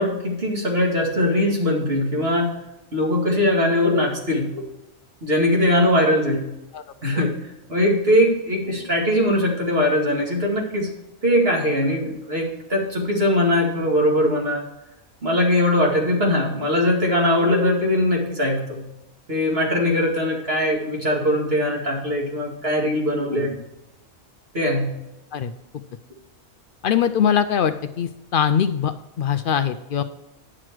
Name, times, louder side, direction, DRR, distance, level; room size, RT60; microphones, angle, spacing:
voice 1, 0.0-2.5 2.9-4.6 5.2-6.5 7.0-7.4 7.7-10.9 11.2-14.6 15.2-18.8 19.3-23.6 24.5-25.0, left 1 dB, 45° right, -2 dB, 2.3 m, -21 dB
voice 2, 26.8-30.0, left 8 dB, 80° left, 9 dB, 0.4 m, -22 dB
9.9 x 6.2 x 4.6 m, 0.92 s
omnidirectional pair, 1.5 m